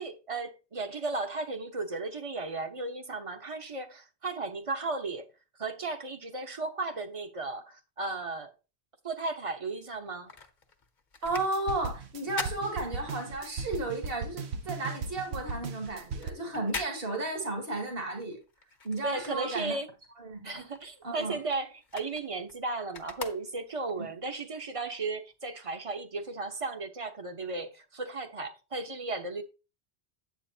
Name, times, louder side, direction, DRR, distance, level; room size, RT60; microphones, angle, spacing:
voice 1, 0.0-5.3 5.6-8.5 9.0-10.3 19.0-19.9 20.4-29.4, right 3 dB, 35° right, 1.0 m, -35 dB
sound 1, 9.8-13.6 13.9-19.9 20.2-24.0 24.5-24.6, left 4 dB, 50° left, 1.1 m, -44 dB
voice 2, 11.2-18.4 18.8-19.8 20.2-20.5 21.0-21.4 24.0-24.1, right 2 dB, 65° right, 2.2 m, -33 dB
sound 2, 11.3-16.3, right 4 dB, 80° right, 1.1 m, -37 dB
9.4 x 7.7 x 2.8 m
omnidirectional pair, 1.1 m